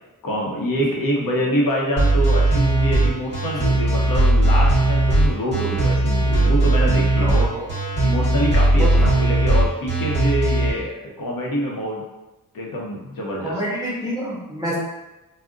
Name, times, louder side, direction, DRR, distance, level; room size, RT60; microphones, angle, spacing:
voice 1, 0.2-7.5 8.0-12.0 12.5-13.5, equal, 70° left, -2 dB, 0.7 m, -25 dB
sound 1, 2.0-10.7, right 2 dB, 45° left, 1.1 m, -18 dB
voice 2, 7.2-7.6 8.8-9.1 13.4-14.8, right 1 dB, 10° right, -6 dB, 0.7 m, -27 dB
2.4 x 2.0 x 3.6 m, 1.0 s
wide cardioid pair, 140°, 35 cm